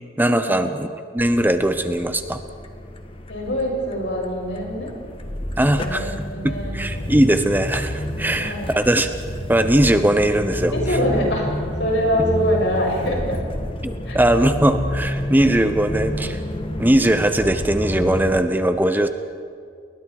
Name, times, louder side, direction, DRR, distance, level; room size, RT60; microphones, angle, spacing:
voice 1, 0.2-0.9 1.1-2.4 5.6-6.1 6.4-9.1 9.5-10.7 13.8-16.4 16.8-19.1, right 1 dB, 10° right, 9 dB, 0.8 m, -19 dB
sound 1, 1.2-18.4, equal, 30° left, 1.6 m, -29 dB
voice 2, 3.3-4.9 5.7-7.1 8.4-8.7 10.7-11.5 11.8-13.4 14.1-14.2, equal, 75° left, -1 dB, 7.0 m, -24 dB
30.0 x 21.5 x 4.8 m, 2.3 s
head